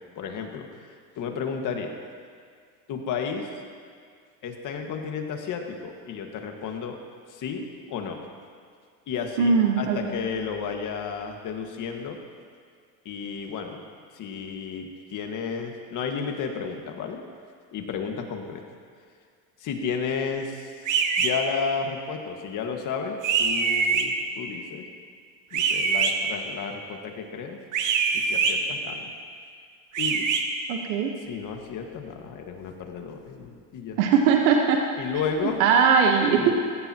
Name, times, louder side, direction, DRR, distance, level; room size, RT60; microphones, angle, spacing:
voice 1, 0.2-2.0 2.9-3.5 4.4-7.0 7.3-8.2 9.1-12.2 13.1-13.9 14.1-17.2 17.7-18.6 19.6-20.7 21.2-24.9 25.5-27.6 28.1-29.1 30.0-30.3 31.3-34.0 35.0-35.6 36.4-36.5, left 6 dB, 45° left, 3 dB, 1.8 m, -32 dB
voice 2, 9.4-10.0 30.7-31.1 34.0-34.8 35.6-36.5, right 6 dB, 85° right, 2 dB, 1.3 m, -20 dB
sound 1, 20.9-21.3 23.2-24.1 25.5-26.1 27.7-28.5 29.9-30.4, right 5 dB, 45° right, 1.4 m, -23 dB
17.0 x 16.0 x 3.0 m, 2.1 s
supercardioid pair, 120°, 42 cm